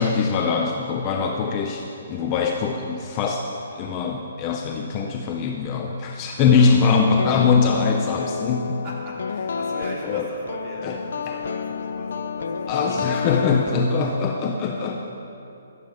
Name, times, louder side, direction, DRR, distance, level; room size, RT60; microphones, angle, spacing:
voice 1, 0.0-3.5 3.7-8.8 10.0-10.3 10.8-11.0 11.3-11.4 12.7-15.0, left 5 dB, 20° left, 1 dB, 0.7 m, -22 dB
voice 2, 1.2-1.6 2.1-2.2 6.3-7.4 8.8-14.1 14.6-15.0, right 1 dB, 20° right, -5 dB, 3.1 m, -39 dB
sound 1, 7.2-14.3, left 6 dB, 60° left, 0.6 m, -30 dB
17.5 x 12.5 x 5.2 m, 2.8 s
hypercardioid pair, 175°, 0 cm